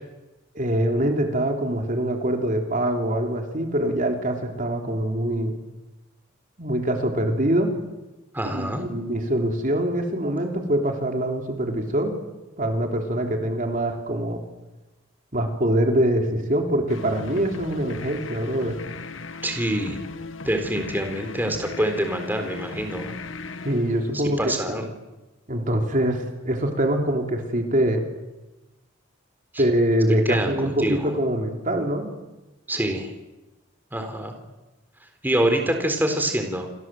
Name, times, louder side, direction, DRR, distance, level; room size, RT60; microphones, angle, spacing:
voice 1, 0.5-5.6 6.6-7.8 8.4-12.2 12.6-14.4 15.3-18.8 23.6-24.9 25.5-28.1 29.6-32.2, right 1 dB, 45° right, 3 dB, 3.7 m, -24 dB
voice 2, 8.3-8.8 19.4-20.0 20.4-23.2 24.1-24.9 29.5-29.6 30.3-31.1 32.7-33.1 33.9-34.3 35.2-36.7, right 1 dB, 10° right, 5 dB, 3.9 m, -25 dB
sound 1, 16.9-24.6, left 3 dB, 90° left, 1.5 m, -37 dB
29.0 x 26.0 x 7.9 m, 1.1 s
head